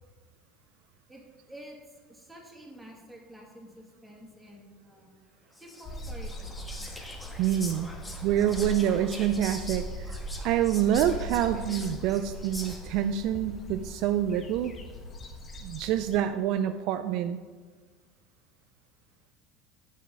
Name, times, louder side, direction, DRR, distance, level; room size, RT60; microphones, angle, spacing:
voice 1, 1.5-5.1 5.6-6.9, equal, 5° right, -1 dB, 2.1 m, -49 dB
Whispering, 5.5-13.1, left 2 dB, 15° left, 1.3 m, -43 dB
sound 1, 5.8-16.2, equal, 30° left, 1.3 m, -40 dB
voice 2, 7.4-7.9 8.2-10.2 10.4-14.7 15.6-17.4, right 10 dB, 55° right, 9 dB, 0.3 m, -27 dB
6.9 x 6.5 x 5.2 m, 1.4 s
figure-of-eight pair, 70°, 0 cm